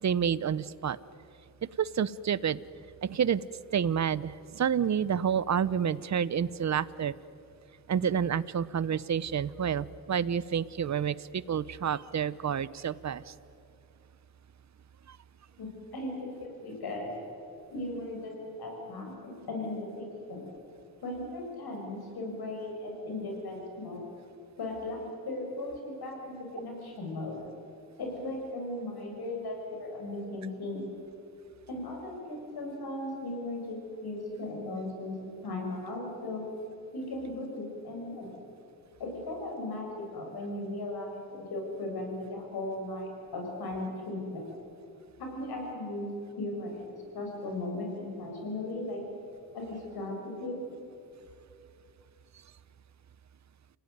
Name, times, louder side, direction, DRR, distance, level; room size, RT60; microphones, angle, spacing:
voice 1, 0.0-1.0 1.8-2.6 3.0-3.4 3.7-7.1 7.9-13.3 15.1-15.2, right 8 dB, 50° right, 18 dB, 0.8 m, -29 dB
voice 2, 15.6-17.1 17.7-20.5 21.0-24.0 24.6-25.0 25.2-27.4 28.0-30.9 31.7-35.1 35.4-36.5 36.9-38.3 39.0-44.4 45.2-46.1 46.4-49.0 49.5-50.6, left 2 dB, 80° left, 1 dB, 6.7 m, -37 dB
28.5 x 17.5 x 9.4 m, 2.7 s
cardioid pair, 85°, 37 cm